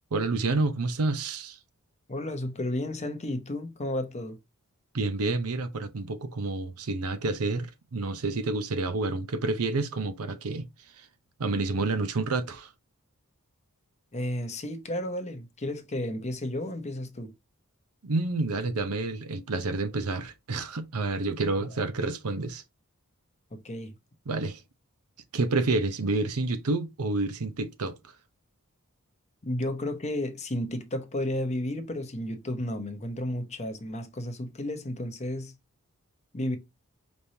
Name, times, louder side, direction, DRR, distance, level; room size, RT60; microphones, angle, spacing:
voice 1, 0.1-1.6 4.9-10.7 11.0-11.1 11.4-12.7 18.0-22.6 24.3-24.6 25.3-28.1, right 3 dB, 75° right, 0.7 m, -29 dB
voice 2, 2.1-4.4 14.1-17.3 21.6-21.7 23.5-23.9 29.4-35.6 36.3-36.6, left 1 dB, 30° left, 0.8 m, -32 dB
5.3 x 3.1 x 2.7 m
head